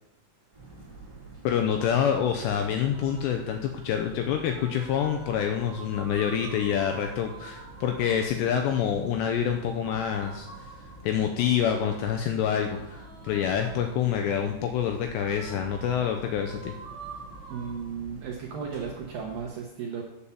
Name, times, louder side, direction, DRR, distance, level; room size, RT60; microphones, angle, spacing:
sound 1, 0.5-19.5, right 2 dB, 10° right, 2.3 m, -48 dB
voice 1, 1.4-10.7 11.0-16.8, left 8 dB, 90° left, 5 dB, 2.5 m, -27 dB
sound 2, 2.9-3.6 4.2-8.4 9.8-11.3 12.4-14.1 15.2-17.7, right 4 dB, 35° right, 3.3 m, -47 dB
voice 2, 17.5-20.0, right 6 dB, 80° right, -1 dB, 2.1 m, -35 dB
8.7 x 7.2 x 6.9 m, 0.91 s
omnidirectional pair, 5.7 m